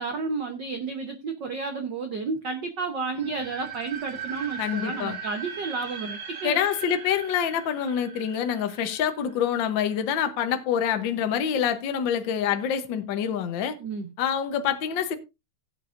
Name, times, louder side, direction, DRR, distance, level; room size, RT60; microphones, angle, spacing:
voice 1, 0.0-6.6 13.8-14.1, right 4 dB, 90° right, 0.9 m, -31 dB
sound 1, 3.1-10.0, right 6 dB, 40° right, 1.9 m, -39 dB
voice 2, 4.6-5.2 6.4-13.8 14.2-15.2, left 8 dB, 75° left, 1.1 m, -26 dB
16.5 x 8.6 x 2.6 m
omnidirectional pair, 3.5 m